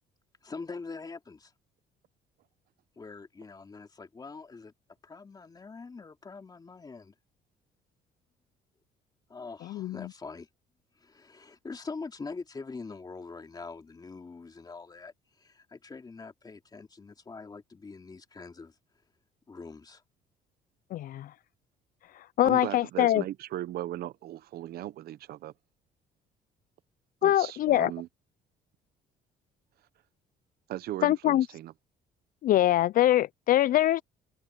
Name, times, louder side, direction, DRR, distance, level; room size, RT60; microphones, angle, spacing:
voice 1, 0.4-1.5 3.0-4.7 5.0-7.1 9.3-10.5 11.0-18.7 19.5-20.0, left 4 dB, 25° left, 2.8 m, -43 dB
voice 2, 20.9-21.3 22.4-23.2 27.2-27.9 31.0-31.4 32.4-34.0, left 13 dB, 55° left, 0.4 m, -23 dB
voice 3, 22.4-25.5 27.2-28.1 30.7-31.7, right 14 dB, 65° right, 0.8 m, -37 dB
open air
cardioid pair, 110°, 17 cm